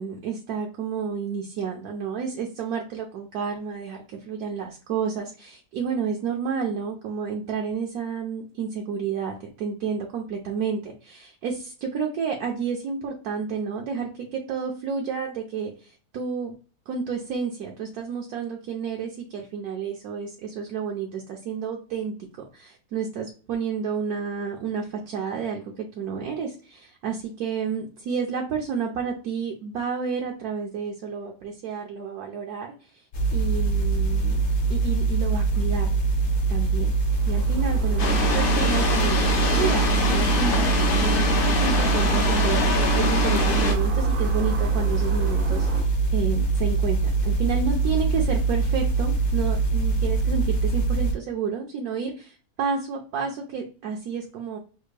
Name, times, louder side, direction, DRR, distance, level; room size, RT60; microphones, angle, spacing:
voice 1, 0.0-16.6 16.9-33.1 33.3-34.4 34.7-35.9 36.5-37.0 37.3-42.6 42.9-54.6, right 6 dB, 70° right, 1 dB, 1.0 m, -30 dB
sound 1, 33.1-51.1, right 4 dB, 55° left, 0.9 m, -23 dB
sound 2, 37.0-45.8, right 3 dB, 50° right, 0.7 m, -39 dB
sound 3, 38.0-43.7, left 2 dB, 70° left, 0.5 m, -24 dB
3.4 x 2.4 x 3.2 m, 0.39 s
omnidirectional pair, 1.8 m